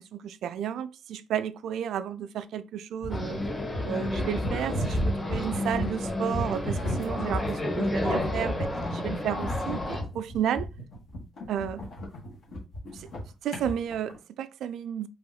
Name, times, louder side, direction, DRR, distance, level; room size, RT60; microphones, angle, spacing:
voice 1, 0.0-3.4 3.8-10.7 11.5-11.8 12.9-13.1 13.4-15.1, right 9 dB, 75° right, 0.3 m, -32 dB
sound 1, 3.0-14.2, equal, 70° left, 1.6 m, -33 dB
sound 2, 3.1-10.0, left 1 dB, 20° left, 1.1 m, -32 dB
3.0 x 2.8 x 4.0 m
cardioid pair, 90°, 0 cm